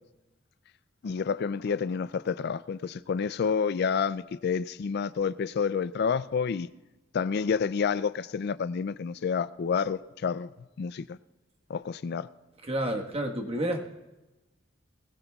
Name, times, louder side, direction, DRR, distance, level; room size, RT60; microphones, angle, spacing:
voice 1, 1.0-6.7 7.1-10.5 10.8-11.2 11.7-12.3, left 6 dB, 55° left, 0.4 m, -29 dB
voice 2, 12.6-13.8, right 1 dB, 30° right, 1.4 m, -30 dB
20.5 x 17.0 x 2.4 m
head